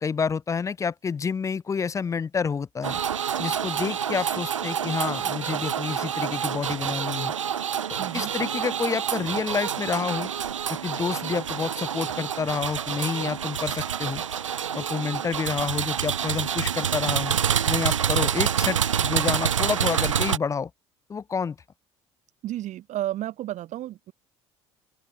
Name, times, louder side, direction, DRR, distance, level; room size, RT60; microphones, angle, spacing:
voice 1, 0.0-3.0 3.4-7.3 8.1-10.3 10.8-14.2 14.7-17.4 17.7-20.7 21.1-21.6, left 6 dB, 20° left, 0.4 m, -29 dB
sound 1, 2.8-20.4, right 8 dB, 85° right, 0.5 m, -27 dB
voice 2, 8.0-8.3 22.4-24.1, right 14 dB, 50° right, 1.8 m, -32 dB
open air
figure-of-eight pair, 60°, 16 cm